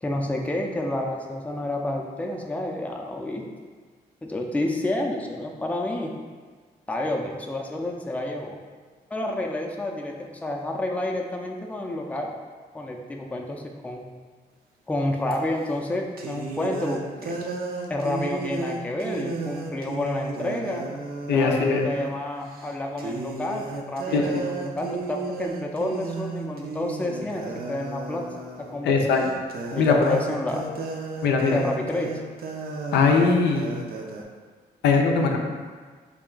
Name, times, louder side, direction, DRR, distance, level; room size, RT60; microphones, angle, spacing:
voice 1, 0.0-3.4 4.2-6.2 6.9-8.6 9.1-12.3 12.7-14.1 14.9-17.4 17.9-20.9 21.3-28.3 28.6-29.3 29.7-30.7 31.5-32.2, left 1 dB, 10° left, 0 dB, 0.4 m, -29 dB
sound 1, 15.3-15.4 16.2-22.2 22.5-22.7 23.0-34.2, right 3 dB, 60° right, 0.5 m, -34 dB
voice 2, 21.3-21.8 24.1-24.5 28.8-29.2 29.8-30.2 31.2-31.6 32.9-33.7 34.8-35.4, left 4 dB, 85° left, 2 dB, 0.4 m, -20 dB
3.4 x 2.3 x 3.7 m, 1.5 s
cardioid pair, 70°, 17 cm